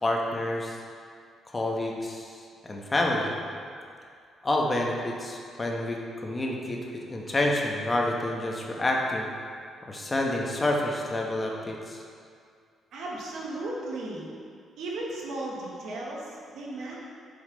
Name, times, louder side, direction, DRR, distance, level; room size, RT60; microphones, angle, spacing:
voice 1, 0.0-0.8 1.5-2.4 2.6-3.3 4.4-9.3 9.9-12.0, left 1 dB, 25° left, 0 dB, 1.1 m, -28 dB
voice 2, 12.9-14.3 14.8-17.0, right 2 dB, 75° right, -3 dB, 1.4 m, -35 dB
6.8 x 5.5 x 4.0 m, 2.3 s
cardioid pair, 90°, 0 cm